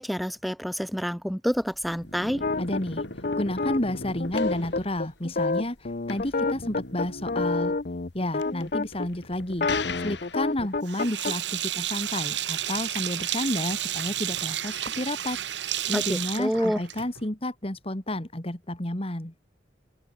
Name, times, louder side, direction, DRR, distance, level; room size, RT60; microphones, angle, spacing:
voice 1, 0.0-2.4 15.9-16.8, equal, ahead, 2.6 m, -28 dB
sound 1, 1.5-10.8, left 3 dB, 70° left, 6.2 m, -39 dB
sound 2, 2.4-9.1 9.5-11.3, left 3 dB, 50° left, 0.8 m, -29 dB
voice 2, 2.6-7.7 8.1-9.7 10.0-15.4 15.9-19.3, left 1 dB, 30° left, 2.4 m, -31 dB
Sink (filling or washing), 10.8-17.2, right 12 dB, 70° right, 2.1 m, -31 dB
open air
head